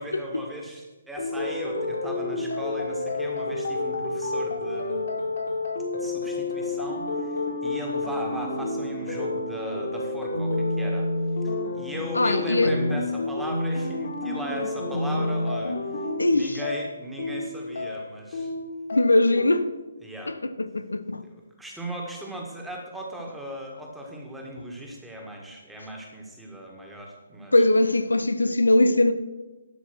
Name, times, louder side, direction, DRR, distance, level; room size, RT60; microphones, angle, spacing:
voice 1, 0.0-5.1 5.9-11.1 11.7-15.8 16.3-18.5 20.0-20.3 21.2-27.5, equal, 5° right, 1.7 m, -37 dB
sound 1, 1.2-19.5, left 2 dB, 60° left, 2.3 m, -29 dB
voice 2, 12.1-12.8 16.2-16.6 18.9-19.7 20.6-21.2 27.5-29.1, left 2 dB, 75° left, 0.6 m, -21 dB
11.5 x 5.8 x 6.0 m
figure-of-eight pair, 135°, 0 cm